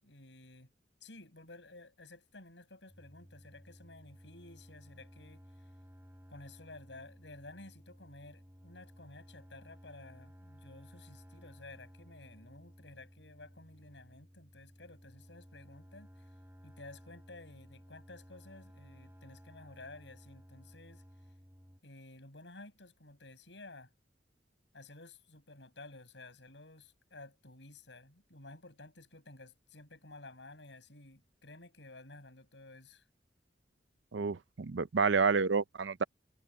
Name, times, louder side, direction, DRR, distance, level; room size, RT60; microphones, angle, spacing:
voice 1, 0.0-0.7 1.0-5.7 6.3-16.3 16.6-21.0 21.8-23.9 24.7-33.0, left 2 dB, 80° left, 7.3 m, -53 dB
sound 1, 2.9-21.8, equal, 15° right, 3.8 m, -57 dB
voice 2, 34.1-36.0, right 5 dB, 85° right, 0.6 m, -29 dB
head